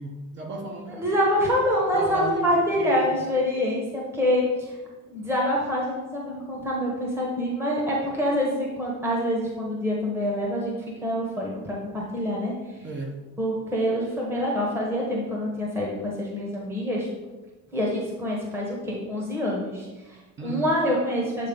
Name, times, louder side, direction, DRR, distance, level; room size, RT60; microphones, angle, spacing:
voice 1, 0.0-1.0 1.9-3.2 12.8-13.2 20.4-20.7, right 3 dB, 30° right, 1 dB, 1.0 m, -34 dB
voice 2, 1.0-4.8 5.1-10.7 11.0-12.5 13.4-17.1 17.7-21.5, equal, 5° right, -3 dB, 1.1 m, -26 dB
8.4 x 2.8 x 5.3 m, 1.2 s
cardioid pair, 145°, 35 cm